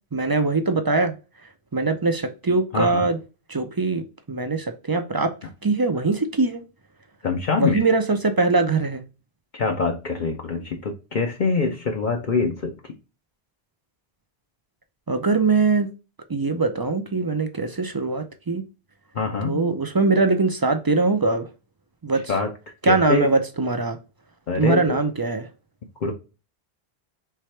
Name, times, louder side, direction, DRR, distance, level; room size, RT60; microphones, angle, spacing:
voice 1, 0.1-1.1 1.7-3.2 3.5-5.3 5.6-6.6 7.6-9.0 15.1-15.9 16.3-18.6 19.5-21.5 22.0-22.3 22.8-24.0 24.6-25.5, right 3 dB, 35° right, 0.4 m, -22 dB
voice 2, 2.7-3.1 7.2-7.8 9.5-12.9 19.1-19.7 22.1-22.5 22.8-23.3 24.5-25.0 26.0-26.1, left 4 dB, 55° left, 0.8 m, -25 dB
4.6 x 3.3 x 3.2 m
omnidirectional pair, 1.1 m